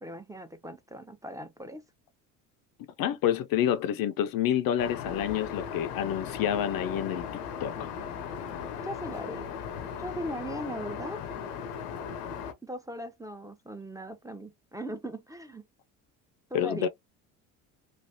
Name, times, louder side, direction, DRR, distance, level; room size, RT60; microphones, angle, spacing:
voice 1, 0.0-1.8 8.8-9.5 10.0-11.2 12.6-15.6 16.5-16.9, equal, 5° right, 0.6 m, -39 dB
voice 2, 3.0-7.2 7.6-7.9 16.5-16.9, left 10 dB, 50° left, 0.5 m, -28 dB
Aircraft, 4.8-12.5, left 7 dB, 85° left, 0.7 m, -37 dB
3.2 x 2.4 x 2.7 m
hypercardioid pair, 65°, 46 cm